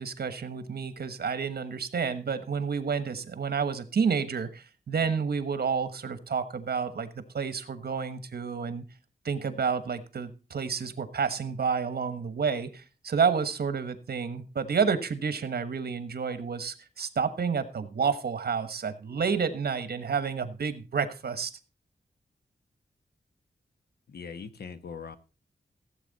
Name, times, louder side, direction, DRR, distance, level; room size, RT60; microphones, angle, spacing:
voice 1, 0.0-7.1 7.3-8.8 9.2-21.5, right 6 dB, 75° right, 12 dB, 1.3 m, -30 dB
voice 2, 24.1-25.2, left 5 dB, 80° left, 10 dB, 1.1 m, -41 dB
16.0 x 8.1 x 4.0 m, 0.33 s
wide cardioid pair, 145°, 16 cm